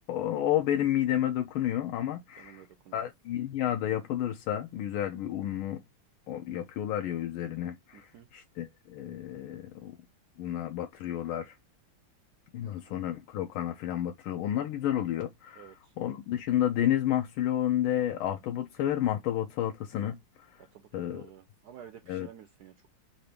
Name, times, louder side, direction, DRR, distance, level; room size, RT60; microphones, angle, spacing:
voice 1, 0.1-2.6 2.9-5.8 6.3-10.0 10.4-11.5 12.5-20.6 20.9-21.3 22.1-22.3, left 11 dB, 85° left, 1.4 m, -31 dB
voice 2, 2.4-3.0 7.9-8.3 12.6-13.0 15.6-15.9 20.7-22.9, right 9 dB, 85° right, 0.8 m, -52 dB
4.8 x 2.6 x 3.3 m
omnidirectional pair, 2.3 m